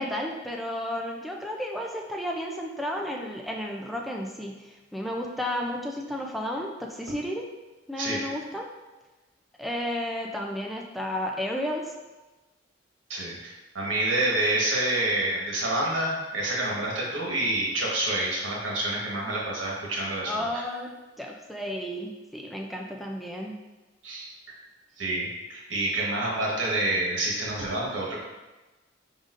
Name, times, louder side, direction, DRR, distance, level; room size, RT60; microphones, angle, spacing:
voice 1, 0.0-7.4 7.9-8.6 9.6-11.9 20.3-23.6, left 1 dB, ahead, -1 dB, 0.3 m, -32 dB
voice 2, 13.1-20.6 24.0-24.3 25.0-28.2, right 1 dB, 90° right, -3 dB, 1.2 m, -28 dB
5.0 x 4.0 x 2.5 m, 1.1 s
head